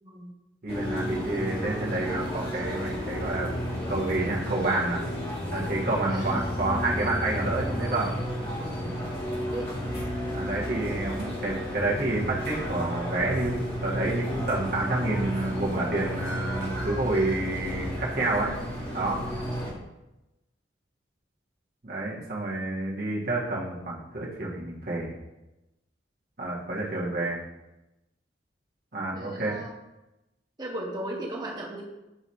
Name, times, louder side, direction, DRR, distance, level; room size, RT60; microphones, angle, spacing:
voice 1, 0.0-0.3 5.9-6.4 9.5-9.7 19.6-19.9 29.1-29.7 30.6-31.8, right 1 dB, 25° right, -2 dB, 1.1 m, -37 dB
voice 2, 0.6-3.5 3.9-5.0 5.5-8.1 10.3-18.5 18.9-19.2 21.8-25.1 26.4-27.4 28.9-29.6, right 2 dB, 55° right, -5 dB, 1.4 m, -29 dB
sound 1, 0.7-19.7, equal, 30° left, 1.7 m, -32 dB
8.0 x 3.0 x 4.1 m, 0.97 s
head